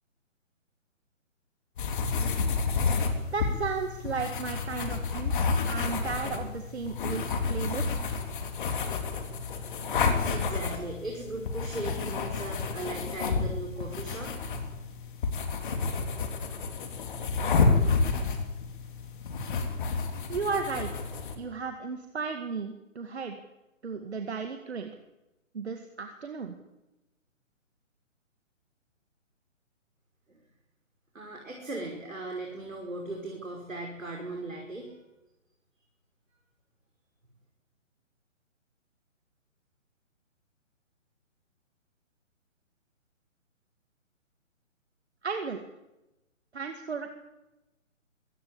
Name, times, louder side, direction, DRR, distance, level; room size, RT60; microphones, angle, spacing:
sound 1, 1.8-21.3, left 4 dB, 40° left, 3.4 m, -30 dB
voice 1, 3.3-8.1 20.3-21.1 21.4-23.4 23.8-24.9 25.5-26.5 45.2-45.6 46.5-47.1, right 5 dB, 55° right, 6 dB, 2.1 m, -34 dB
voice 2, 9.9-14.3 30.3-30.4 31.1-35.0, right 2 dB, 80° right, 0 dB, 5.5 m, -38 dB
23.0 x 17.5 x 8.7 m, 0.98 s
figure-of-eight pair, 135°, 39 cm